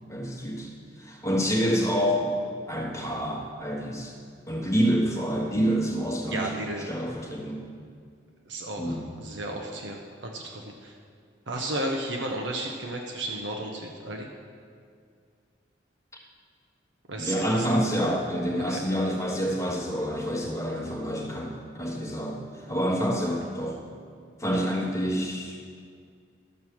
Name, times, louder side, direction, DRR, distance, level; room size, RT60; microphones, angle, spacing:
voice 1, 0.1-2.4 2.7-4.1 4.5-6.5 6.9-7.6 8.8-9.1 17.2-23.8 24.4-25.6, equal, 15° left, -3 dB, 1.6 m, -27 dB
voice 2, 6.3-6.9 8.5-10.9 11.5-14.3 17.1-17.8 18.7-18.8, right 1 dB, 75° right, 1 dB, 0.9 m, -33 dB
13.5 x 4.6 x 7.1 m, 2.1 s
head